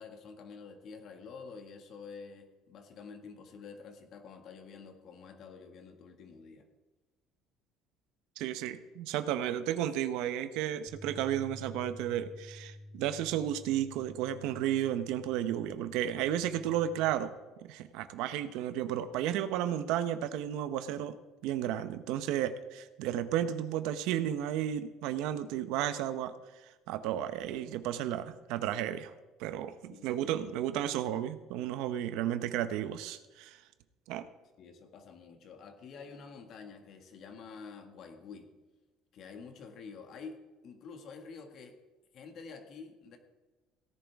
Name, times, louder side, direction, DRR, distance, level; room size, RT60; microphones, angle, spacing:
voice 1, 0.0-6.7 29.9-30.7 34.6-38.5 39.1-41.8 42.1-43.2, left 5 dB, 50° left, 5 dB, 1.8 m, -48 dB
voice 2, 8.4-17.3 17.7-21.2 21.4-26.3 26.9-29.1 29.4-33.6 34.1-34.2, right 11 dB, 80° right, 11 dB, 0.8 m, -33 dB
Bass guitar, 10.9-17.1, left 1 dB, 35° left, 3.8 m, -50 dB
17.0 x 10.5 x 3.6 m, 1.2 s
cardioid pair, 130°, 0 cm